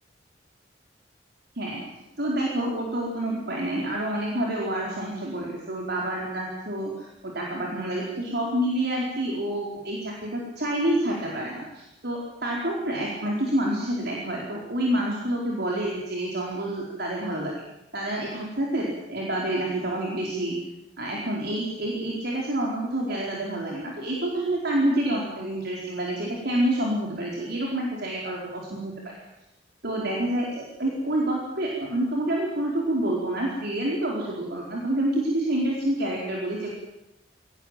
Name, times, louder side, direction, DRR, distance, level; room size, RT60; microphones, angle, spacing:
voice 1, 2.2-17.5 17.9-20.5 21.0-29.2 29.8-36.7, right 1 dB, 60° right, -2 dB, 4.6 m, -28 dB
23.5 x 19.0 x 9.2 m, 0.92 s
head